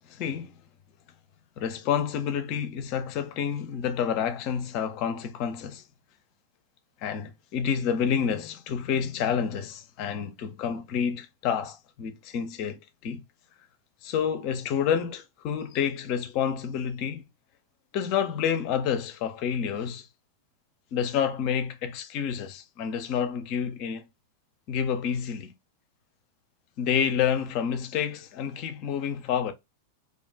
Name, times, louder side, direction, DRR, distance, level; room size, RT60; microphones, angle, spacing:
voice 1, 0.1-0.5 1.6-5.8 7.0-13.2 14.0-17.2 17.9-20.1 20.9-24.0 24.7-25.5 26.8-29.5, left 8 dB, 45° left, 0.5 m, -29 dB
2.5 x 2.2 x 3.7 m
figure-of-eight pair, 90°, 0 cm